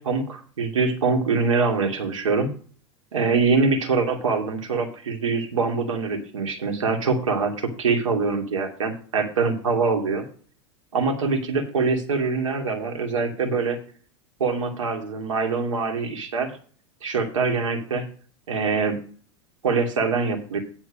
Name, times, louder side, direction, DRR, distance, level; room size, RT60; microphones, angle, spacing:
voice 1, 0.0-2.5 3.1-10.2 10.9-13.8 14.4-16.5 17.0-18.1 18.5-19.0 19.6-20.6, right 4 dB, 90° right, 3 dB, 2.6 m, -24 dB
10.5 x 4.4 x 7.3 m, 0.43 s
hypercardioid pair, 105°, 16 cm